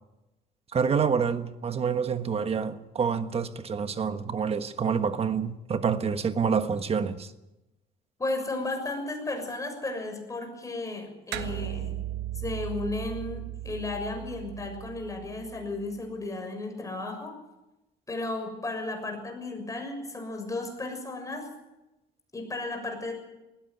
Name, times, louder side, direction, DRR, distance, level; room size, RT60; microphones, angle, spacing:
voice 1, 0.7-7.3, right 6 dB, 35° right, 1.4 m, -27 dB
voice 2, 8.2-11.9 12.4-17.3 18.1-21.5 22.3-23.1, left 2 dB, 20° left, 6.6 m, -34 dB
sound 1, 11.3-16.1, right 14 dB, 90° right, 1.5 m, -37 dB
19.5 x 16.5 x 9.3 m
cardioid pair, 110°, 17 cm